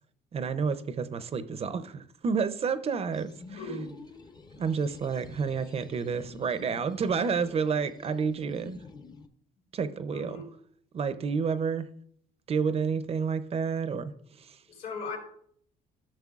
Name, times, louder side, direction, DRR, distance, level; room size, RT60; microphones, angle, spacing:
voice 1, 0.3-3.6 4.6-8.8 9.7-10.4 10.9-11.9 12.5-14.6, right 5 dB, 35° right, 13 dB, 0.6 m, -30 dB
sound 1, 3.1-9.3, left 4 dB, 25° left, 0.7 m, -49 dB
voice 2, 3.5-3.9 9.6-9.7 10.1-10.5 14.7-15.2, left 3 dB, 65° left, 0 dB, 3.3 m, -38 dB
13.0 x 6.3 x 2.4 m, 0.65 s
cardioid pair, 110°, 17 cm